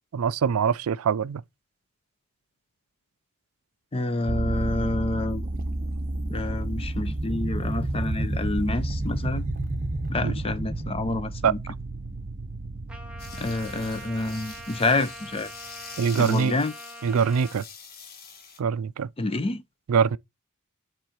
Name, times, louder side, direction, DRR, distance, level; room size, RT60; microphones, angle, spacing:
voice 1, 0.1-1.4 10.2-10.3 11.4-11.5 16.0-16.5 17.0-17.6 18.6-19.1 19.9-20.2, right 6 dB, 70° right, 0.4 m, -23 dB
voice 2, 3.9-5.5 6.3-9.5 10.1-11.6 13.3-15.5 16.2-16.7 19.2-19.6, left 2 dB, 25° left, 0.6 m, -28 dB
sound 1, 4.3-15.7, right 1 dB, 40° right, 1.2 m, -31 dB
Trumpet, 12.9-17.6, right 1 dB, 5° right, 1.1 m, -43 dB
sound 2, 13.2-18.6, left 6 dB, 45° left, 1.2 m, -45 dB
7.5 x 3.8 x 4.4 m
head